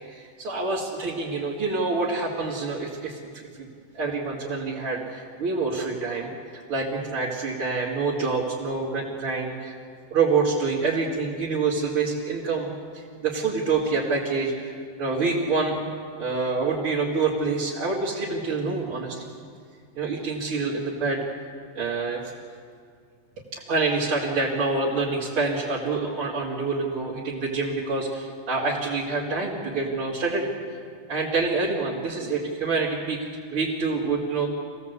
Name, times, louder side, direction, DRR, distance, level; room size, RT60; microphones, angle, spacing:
voice 1, 0.0-3.2 3.6-3.7 3.9-9.7 10.1-14.7 15.0-15.8 16.2-19.3 19.9-21.3 21.7-22.2 23.5-30.5 31.1-34.5, right 4 dB, 35° right, -8 dB, 3.0 m, -27 dB
26.5 x 17.0 x 8.2 m, 2.1 s
omnidirectional pair, 4.7 m